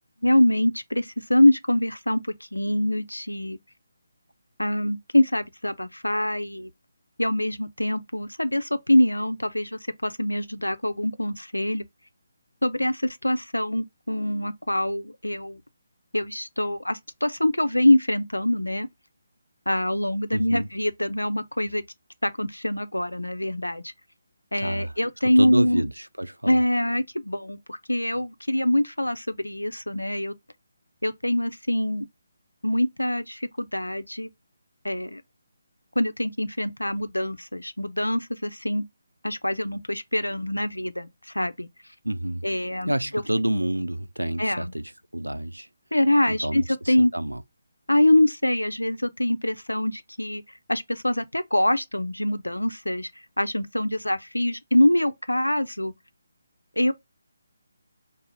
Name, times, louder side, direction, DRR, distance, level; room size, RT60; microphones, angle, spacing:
voice 1, 0.2-2.2 2.5-3.6 4.6-6.7 7.2-11.9 12.6-15.6 16.1-18.9 19.7-21.8 22.2-23.9 24.5-25.8 26.5-30.3 31.0-32.0 32.6-34.3 34.8-35.2 36.0-38.8 39.2-41.1 41.3-41.7 42.4-43.2 44.4-44.7 45.9-47.1 47.9-50.4 50.7-53.1 53.4-55.9 56.8-56.9, left 1 dB, 80° left, 0.6 m, -24 dB
voice 2, 20.3-20.7 24.6-24.9 25.4-26.6 42.0-42.4 42.9-45.7 46.3-47.4, right 1 dB, 85° right, 0.5 m, -28 dB
4.9 x 2.0 x 3.9 m
figure-of-eight pair, 150°, 0 cm